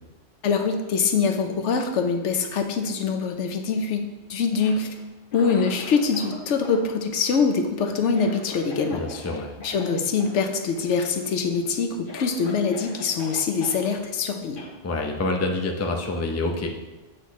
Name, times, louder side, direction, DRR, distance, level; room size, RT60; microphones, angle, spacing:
voice 1, 0.4-4.0 4.3-4.9 5.3-9.0 9.6-14.6, left 5 dB, 80° left, 6 dB, 1.0 m, -24 dB
Cough, 4.4-6.4 6.6-9.3 9.6-9.8 10.2-10.4 10.6-11.2 11.6-11.7 12.1-13.8 14.6-14.7, left 2 dB, 50° left, 1.3 m, -41 dB
voice 2, 8.9-9.5 14.8-16.7, left 2 dB, 20° left, 2 dB, 0.4 m, -27 dB
7.7 x 6.2 x 3.1 m, 1.1 s
omnidirectional pair, 1.2 m